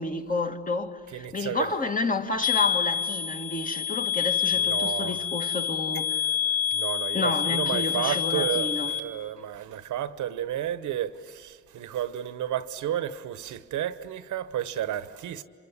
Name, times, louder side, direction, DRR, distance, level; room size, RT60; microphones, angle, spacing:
voice 1, 0.0-6.2 7.1-8.9, left 3 dB, 25° left, 2.0 m, -30 dB
voice 2, 1.1-1.7 4.6-5.1 6.7-15.4, right 11 dB, 75° right, 1.2 m, -32 dB
sound 1, 2.4-9.0, left 8 dB, 85° left, 2.3 m, -27 dB
26.5 x 26.5 x 8.4 m
cardioid pair, 90°, 30 cm